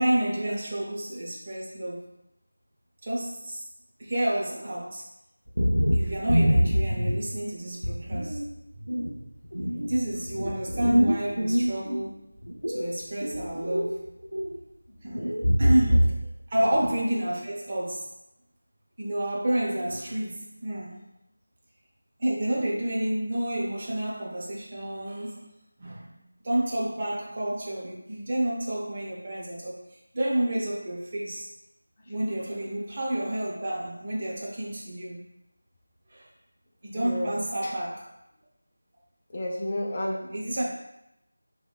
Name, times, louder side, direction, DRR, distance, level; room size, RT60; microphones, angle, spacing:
voice 1, 0.0-2.0 3.0-3.6 4.0-5.0 5.9-8.4 8.7-8.8 9.9-12.3 12.7-14.0 15.0-15.3 15.6-16.1 16.5-18.1 19.0-21.0 22.2-25.4 25.8-26.1 26.4-29.8 30.1-31.5 32.1-35.2 36.1-36.3 36.8-38.1 40.3-40.6, right 1 dB, 35° right, -4 dB, 0.5 m, -29 dB
sound 1, 5.5-7.4 7.8-8.5 8.9-12.0 12.4-14.0 14.2-14.6 15.1-16.3 16.6-17.0, equal, 90° right, 0.4 m, -25 dB
voice 2, 36.9-37.4 37.6-37.7 39.3-40.6, left 1 dB, 30° left, -3 dB, 0.4 m, -32 dB
2.8 x 2.1 x 2.3 m, 0.85 s
figure-of-eight pair, 165°, 0 cm